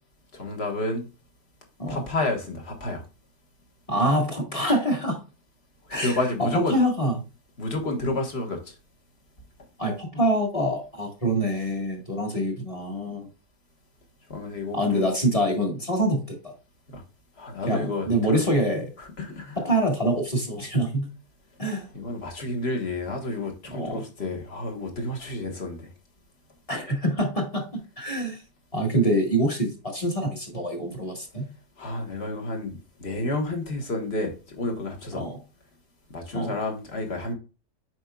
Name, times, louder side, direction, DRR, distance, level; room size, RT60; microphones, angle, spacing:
voice 1, 0.3-1.1 1.9-3.0 6.0-6.8 7.6-8.7 14.3-15.0 16.9-17.0 17.4-18.4 19.0-19.6 21.9-25.9 31.8-35.2 36.1-37.3, left 2 dB, 40° left, 1.5 m, -30 dB
voice 2, 3.9-5.2 5.9-7.1 9.8-13.3 14.7-16.5 17.7-18.9 19.6-21.1 21.6-21.9 23.7-24.0 26.7-27.7 28.0-28.4 28.7-31.5 35.2-35.3 36.3-36.5, right 1 dB, 20° left, 1.5 m, -25 dB
7.9 x 5.3 x 2.3 m
omnidirectional pair, 1.8 m